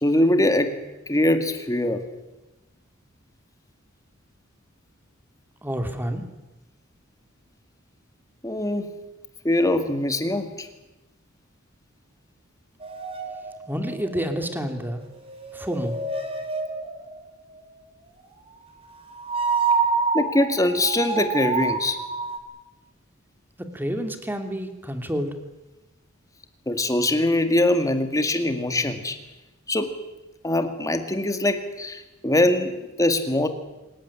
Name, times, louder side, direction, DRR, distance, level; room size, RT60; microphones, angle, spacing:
voice 1, 0.0-0.8 1.1-2.0 8.4-8.9 9.4-10.7 20.1-22.0 26.7-29.2 29.7-30.0 30.4-33.5, left 1 dB, 15° left, 8 dB, 2.1 m, -22 dB
voice 2, 5.6-6.2 13.7-15.0 15.5-16.0 23.6-25.3, equal, 10° right, 6 dB, 2.7 m, -29 dB
sound 1, 12.8-14.7 15.3-17.3 19.1-22.4, right 4 dB, 30° right, 3.6 m, -28 dB
26.5 x 15.0 x 9.9 m, 1.0 s
head